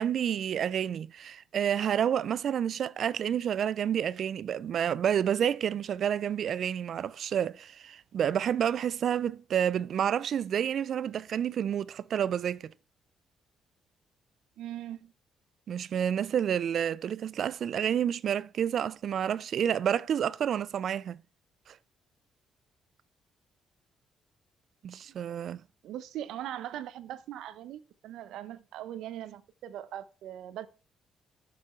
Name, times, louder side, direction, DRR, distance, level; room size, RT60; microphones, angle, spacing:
voice 1, 0.0-12.7 15.7-21.2 21.7-21.8 24.8-25.6, right 9 dB, 60° right, 0.4 m, -29 dB
voice 2, 14.6-15.1 25.8-30.7, right 12 dB, 85° right, 0.8 m, -40 dB
12.0 x 6.9 x 4.5 m
cardioid pair, 90°, 0 cm